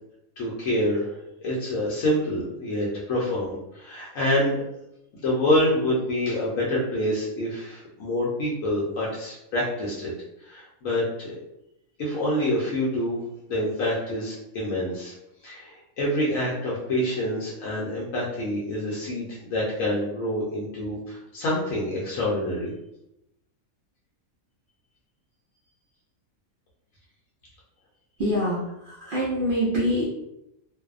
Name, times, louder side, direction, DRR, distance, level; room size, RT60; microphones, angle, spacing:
voice 1, 0.4-1.1 1.4-4.6 5.1-10.1 10.4-11.3 12.0-13.2 13.5-15.1 15.4-22.7, left 1 dB, 70° left, -5 dB, 1.0 m, -27 dB
voice 2, 28.2-30.0, equal, 80° right, -6 dB, 0.4 m, -25 dB
2.5 x 2.0 x 2.4 m, 0.86 s
omnidirectional pair, 1.5 m